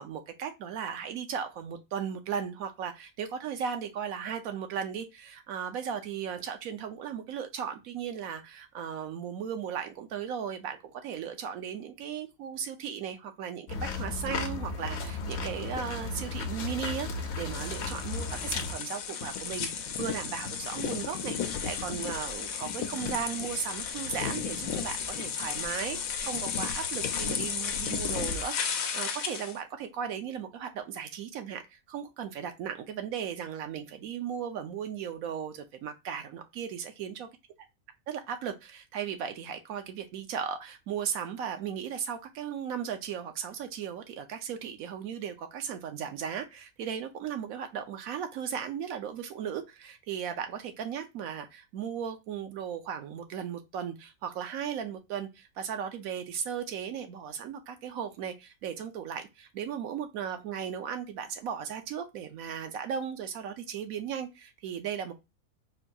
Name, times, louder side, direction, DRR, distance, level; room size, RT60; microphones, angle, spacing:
voice 1, 0.0-37.3 38.1-65.1, right 8 dB, 80° right, 1.1 m, -36 dB
sound 1, 13.7-18.7, left 4 dB, 60° left, 0.8 m, -34 dB
sound 2, 17.5-29.6, left 7 dB, 85° left, 1.1 m, -34 dB
4.3 x 2.3 x 2.7 m
omnidirectional pair, 1.5 m